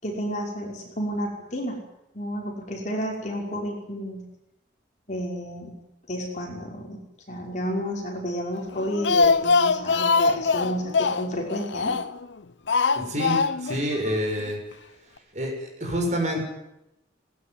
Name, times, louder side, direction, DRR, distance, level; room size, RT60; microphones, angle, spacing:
voice 1, 0.0-1.8 2.1-4.3 5.1-5.8 6.1-12.0, equal, 40° left, 0 dB, 5.7 m, -31 dB
Speech, 8.7-12.3 12.7-13.8 14.1-14.2 14.5-14.6, left 4 dB, 80° left, 0.8 m, -22 dB
voice 2, 13.0-14.6 15.3-16.4, equal, 40° right, 1 dB, 7.0 m, -27 dB
20.5 x 19.0 x 9.6 m, 0.88 s
head